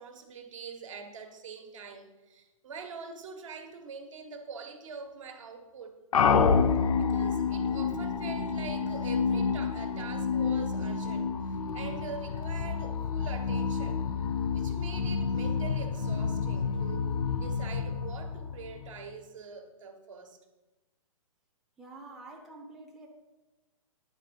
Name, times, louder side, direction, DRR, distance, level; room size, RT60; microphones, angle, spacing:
voice 1, 0.0-6.0 6.9-14.0 14.5-17.1 17.4-20.4, right 5 dB, 60° right, 5 dB, 1.2 m, -44 dB
sound 1, 6.1-19.0, left 5 dB, 85° left, 0.6 m, -29 dB
voice 2, 21.8-23.1, right 2 dB, ahead, -2 dB, 0.5 m, -47 dB
9.4 x 3.9 x 5.2 m, 1.1 s
hypercardioid pair, 145°, 18 cm